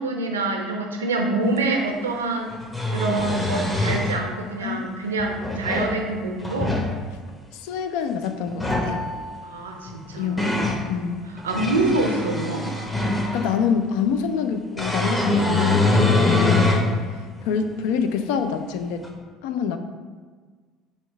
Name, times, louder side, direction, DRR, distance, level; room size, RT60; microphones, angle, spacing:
voice 1, 0.0-2.5 2.9-6.8 9.4-10.5 11.4-12.7, right 2 dB, 90° right, 3 dB, 0.4 m, -26 dB
sound 1, 1.6-1.7 2.5-4.2 5.2-5.9 6.4-6.9 8.5-8.9 9.9-10.8 11.4-13.6 14.8-16.9 17.4-17.5 19.0-19.1, left 2 dB, 10° left, 0.8 m, -23 dB
voice 2, 7.5-9.0 10.2-11.2 11.6-11.7 13.3-17.0 17.4-19.0 19.4-19.8, left 7 dB, 70° left, 7 dB, 0.3 m, -26 dB
sound 2, 8.7-10.1, left 1 dB, 25° left, 1.3 m, -36 dB
4.4 x 2.3 x 4.3 m, 1.5 s
hypercardioid pair, 65°, 0 cm